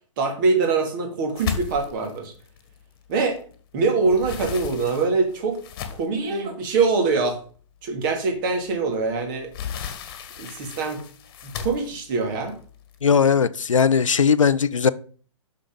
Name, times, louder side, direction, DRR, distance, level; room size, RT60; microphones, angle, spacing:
voice 1, 0.2-2.3 3.1-3.4 3.7-5.6 5.9-7.4 7.8-9.5 10.4-11.0 11.4-12.5, right 4 dB, 40° right, 2.3 m, -23 dB
sound 1, 1.4-3.5 3.9-6.3 6.9-7.0 7.5-7.6 9.0-13.3, left 8 dB, 40° left, 1.5 m, -35 dB
voice 2, 13.0-14.9, left 6 dB, 75° left, 0.5 m, -18 dB
6.6 x 6.1 x 5.3 m
figure-of-eight pair, 115°, 17 cm